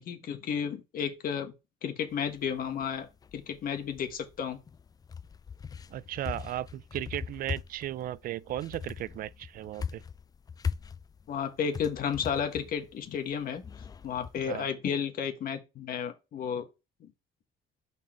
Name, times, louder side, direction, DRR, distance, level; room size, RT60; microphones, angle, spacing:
voice 1, 0.0-1.5 1.8-3.1 3.3-4.6 11.3-13.6 14.0-16.7, left 7 dB, 60° left, 1.5 m, -32 dB
sound 1, 2.1-14.7, left 6 dB, 20° left, 0.3 m, -41 dB
voice 2, 5.9-10.0 14.5-14.7, right 13 dB, 60° right, 0.4 m, -36 dB
5.7 x 4.5 x 4.3 m
cardioid pair, 110°, 17 cm